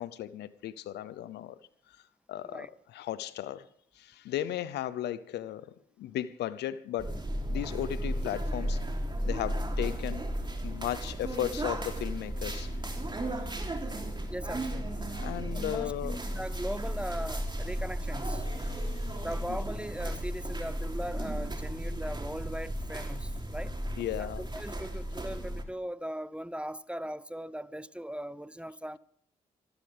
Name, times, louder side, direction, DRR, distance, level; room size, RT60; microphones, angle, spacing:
voice 1, 0.0-1.6 2.3-2.7 2.9-3.6 4.0-7.1 7.5-8.8 9.3-10.3 10.6-12.8 13.2-13.5 15.0-16.2 18.6-19.6 24.0-24.4, left 12 dB, 75° left, 0.7 m, -36 dB
sound 1, 7.0-25.6, right 1 dB, 25° right, 3.2 m, -34 dB
voice 2, 14.3-15.1 15.5-18.5 19.2-23.8 24.2-29.0, equal, 5° right, 0.8 m, -39 dB
26.0 x 13.0 x 3.5 m
hypercardioid pair, 45°, 18 cm